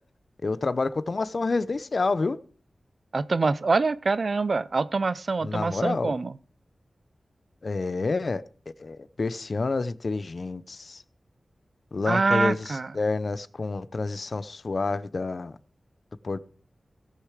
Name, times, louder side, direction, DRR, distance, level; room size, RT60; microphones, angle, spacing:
voice 1, 0.4-2.4 5.4-6.2 7.6-8.4 8.8-11.0 11.9-15.6 16.2-16.4, left 3 dB, 50° left, 0.7 m, -28 dB
voice 2, 3.1-6.3 12.1-12.9, right 3 dB, 55° right, 0.6 m, -25 dB
17.5 x 6.7 x 4.9 m
wide cardioid pair, 105°, 0 cm